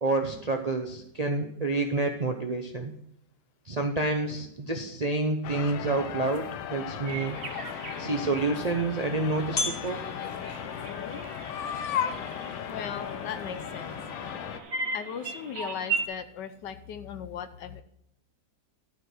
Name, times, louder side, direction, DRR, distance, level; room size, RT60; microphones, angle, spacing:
voice 1, 0.0-2.9 3.7-7.4 8.0-10.0, right 3 dB, 70° right, 4 dB, 0.3 m, -28 dB
sound 1, 5.4-14.6, left 9 dB, 90° left, 1.5 m, -37 dB
sound 2, 7.1-16.1, right 4 dB, 40° right, 1.4 m, -38 dB
sound 3, 7.5-14.2, left 3 dB, 25° left, 1.7 m, -41 dB
voice 2, 11.5-12.1 12.6-14.0 14.9-17.8, left 8 dB, 70° left, 10 dB, 1.4 m, -35 dB
12.0 x 5.1 x 6.2 m, 0.73 s
omnidirectional pair, 2.0 m